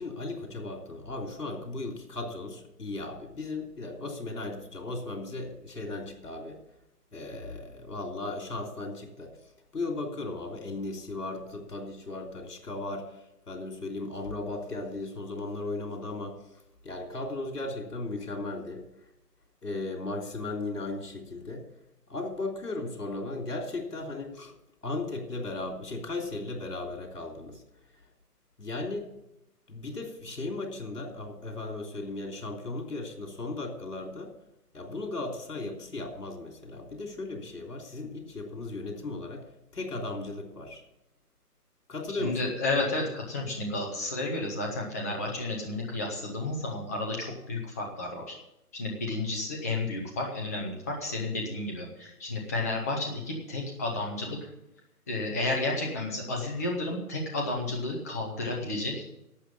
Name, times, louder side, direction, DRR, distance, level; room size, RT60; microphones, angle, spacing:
voice 1, 0.0-6.6 7.1-9.3 9.7-16.4 16.8-18.8 19.6-21.7 22.1-24.5 24.8-27.6 27.9-28.0 28.6-29.1 29.7-34.3 34.7-39.5 39.7-40.8 41.9-42.5, left 2 dB, 70° left, 3 dB, 3.4 m, -36 dB
voice 2, 42.2-48.4 48.7-54.5 55.1-59.0, left 2 dB, 10° left, 0 dB, 0.7 m, -32 dB
11.5 x 7.8 x 8.4 m, 0.83 s
figure-of-eight pair, 145°, 47 cm